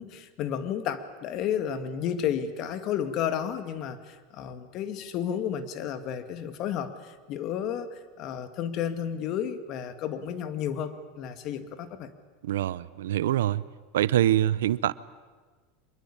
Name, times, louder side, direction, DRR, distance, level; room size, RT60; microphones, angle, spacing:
voice 1, 0.0-12.1, left 9 dB, 50° left, 2.2 m, -32 dB
voice 2, 12.4-13.6 13.9-14.9, right 12 dB, 90° right, 0.7 m, -24 dB
25.0 x 22.0 x 8.7 m
supercardioid pair, 120°, 0 cm